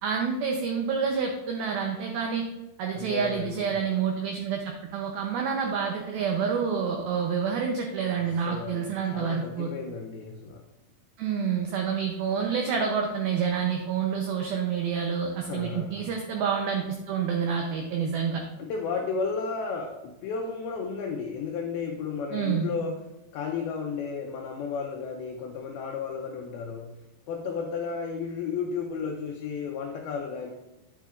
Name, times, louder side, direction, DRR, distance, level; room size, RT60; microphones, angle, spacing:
voice 1, 0.0-2.4 2.8-9.7 11.2-18.4 22.3-22.7, right 6 dB, 90° right, 2 dB, 2.1 m, -28 dB
voice 2, 2.9-3.8 8.2-8.9 9.1-10.6 15.4-16.1 18.6-23.0 23.3-27.0 27.3-30.5, left 5 dB, 85° left, 2 dB, 2.2 m, -33 dB
9.2 x 8.7 x 2.4 m, 1.0 s
omnidirectional pair, 5.3 m